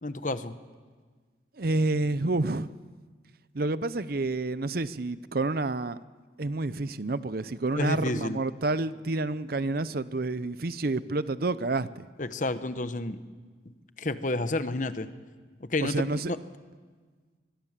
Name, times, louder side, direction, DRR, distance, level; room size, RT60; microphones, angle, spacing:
voice 1, 0.0-0.5 7.8-8.4 12.2-13.2 14.0-15.1 15.6-16.4, left 2 dB, 45° left, 11 dB, 1.0 m, -30 dB
voice 2, 1.6-2.7 3.5-6.0 6.4-12.1 15.8-16.3, right 2 dB, 50° right, 15 dB, 0.7 m, -29 dB
24.5 x 22.0 x 7.5 m, 1.5 s
head